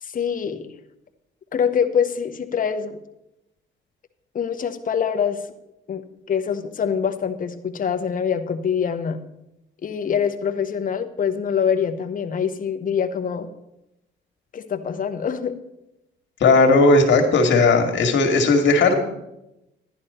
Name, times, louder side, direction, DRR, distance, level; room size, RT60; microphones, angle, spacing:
voice 1, 0.0-0.7 1.5-3.0 4.3-5.4 5.9-6.0 6.3-9.2 9.8-13.5 14.5-15.6, left 7 dB, 45° left, 7 dB, 1.0 m, -24 dB
voice 2, 16.4-19.0, left 3 dB, 65° left, 4 dB, 2.0 m, -16 dB
11.0 x 10.5 x 4.3 m, 0.86 s
cardioid pair, 90°, 20 cm